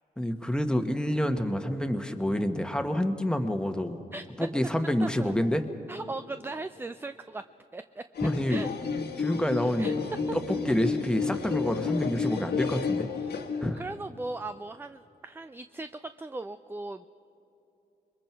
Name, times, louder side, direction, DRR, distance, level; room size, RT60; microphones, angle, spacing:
voice 1, 0.2-4.0 4.4-5.6 8.2-8.6 9.2-9.9 10.3-13.1 13.6-13.8, equal, 5° left, 6 dB, 1.4 m, -28 dB
voice 2, 5.0-5.3 5.9-7.4 7.7-8.7 9.8-9.9 13.2-13.3 13.8-17.1, right 2 dB, 15° right, 11 dB, 0.4 m, -38 dB
sound 1, 8.2-13.8, left 5 dB, 75° left, 1.5 m, -31 dB
sound 2, 8.7-13.6, right 2 dB, 65° right, 5.9 m, -44 dB
26.5 x 21.5 x 4.6 m, 3.0 s
cardioid pair, 70°, 17 cm